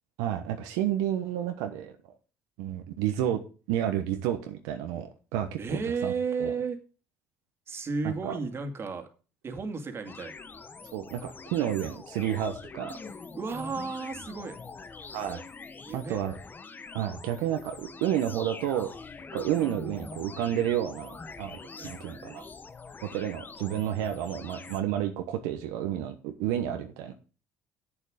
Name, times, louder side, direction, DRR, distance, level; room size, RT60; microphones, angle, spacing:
voice 1, 0.2-1.9 2.6-3.4 3.7-6.1 6.4-6.5 8.0-8.3 10.9-12.9 15.1-15.4 15.9-16.3 16.9-18.9 19.3-22.5 23.0-27.1, right 11 dB, 85° right, 6 dB, 1.1 m, -30 dB
voice 2, 5.6-6.8 7.7-9.1 9.4-10.3 13.3-14.6 15.9-16.2 21.8-21.9, right 4 dB, 40° right, 6 dB, 2.2 m, -33 dB
sound 1, 10.0-24.8, left 4 dB, 30° left, 1.2 m, -44 dB
8.1 x 7.2 x 6.4 m, 0.36 s
supercardioid pair, 75°, 6 cm